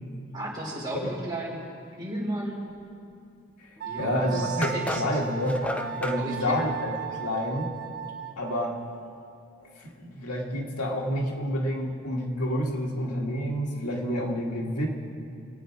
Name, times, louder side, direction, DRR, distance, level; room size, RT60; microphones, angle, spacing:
voice 1, 0.3-1.5 2.0-2.6 3.8-5.0 6.2-6.6, right 1 dB, 20° right, -6 dB, 4.1 m, -34 dB
sound 1, 3.8-3.9 4.6-6.2, left 1 dB, 5° left, 0.4 m, -33 dB
Wind instrument woodwind instrument, 3.8-8.8, right 8 dB, 70° right, 1.0 m, -36 dB
voice 2, 4.0-5.6 5.9-6.9 7.2-7.7 8.4-8.8 9.6-14.9, equal, 90° left, 0 dB, 1.9 m, -29 dB
27.0 x 9.0 x 4.7 m, 2.5 s
head